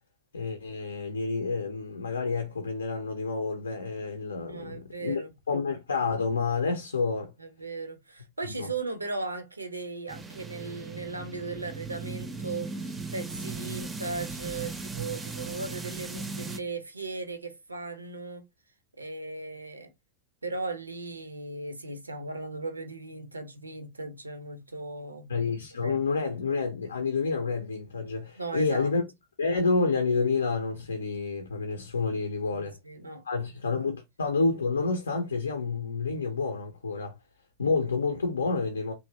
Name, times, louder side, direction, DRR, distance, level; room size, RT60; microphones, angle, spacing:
voice 1, 0.3-7.3 8.5-8.7 25.3-29.0 29.4-32.8 33.2-37.1 37.6-38.9, left 4 dB, 70° left, 0.5 m, -29 dB
voice 2, 4.5-5.3 7.4-18.4 19.0-19.9 20.4-26.3 28.4-28.9 32.5-33.2 33.8-33.9, right 3 dB, 80° right, 0.5 m, -37 dB
sound 1, 10.1-16.6, right 4 dB, 15° right, 0.5 m, -38 dB
3.0 x 2.5 x 2.6 m
figure-of-eight pair, 90°, 0 cm